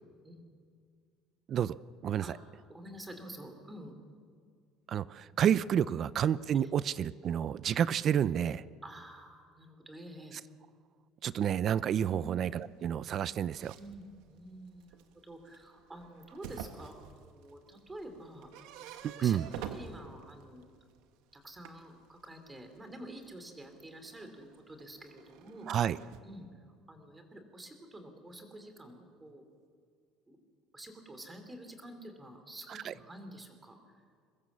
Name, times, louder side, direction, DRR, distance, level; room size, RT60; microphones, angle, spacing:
voice 1, 2.0-2.4 4.9-8.6 11.2-13.7 19.0-19.5 25.7-26.0 32.7-32.9, right 9 dB, 40° right, 17 dB, 0.5 m, -30 dB
voice 2, 2.7-3.9 5.9-6.0 8.8-10.4 12.1-12.3 13.8-17.0 17.2-18.5 19.0-20.7 21.3-25.7 26.2-29.5 30.3-30.4 30.7-34.0, right 1 dB, 10° right, 6 dB, 3.0 m, -49 dB
sound 1, 12.6-21.0 21.3-26.2, right 9 dB, 85° right, 1.7 m, -49 dB
23.5 x 20.5 x 7.4 m, 2.1 s
cardioid pair, 155°, 0 cm